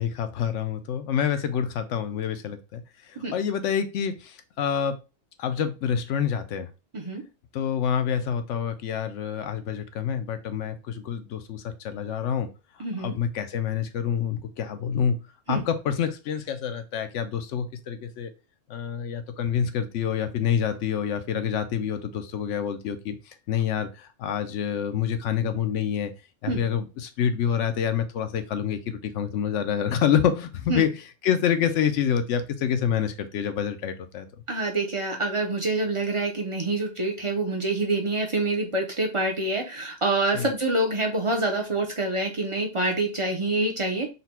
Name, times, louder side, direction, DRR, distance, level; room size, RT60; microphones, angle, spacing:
voice 1, 0.0-2.8 3.1-5.0 5.4-6.7 7.5-12.5 13.0-15.2 15.5-18.3 18.7-26.1 26.4-30.9 31.2-34.3 40.3-40.5, left 8 dB, 75° left, 9 dB, 0.9 m, -27 dB
voice 2, 12.8-13.2 15.5-15.6 26.5-26.6 30.7-30.8 34.5-44.1, right 2 dB, 35° right, 1 dB, 0.5 m, -26 dB
4.1 x 2.2 x 4.2 m, 0.30 s
omnidirectional pair, 1.3 m